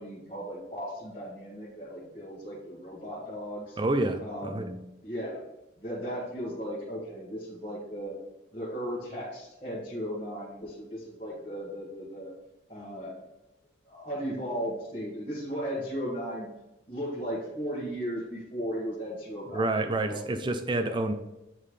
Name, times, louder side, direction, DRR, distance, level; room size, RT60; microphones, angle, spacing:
voice 1, 0.0-3.8 4.2-5.4 5.8-8.2 8.5-12.3 12.7-13.1 13.8-16.5 16.9-20.2 20.8-21.0, equal, 30° left, -8 dB, 1.4 m, -36 dB
voice 2, 3.8-4.7 19.5-21.1, right 2 dB, 25° right, 8 dB, 0.4 m, -28 dB
8.6 x 3.7 x 3.2 m, 0.92 s
head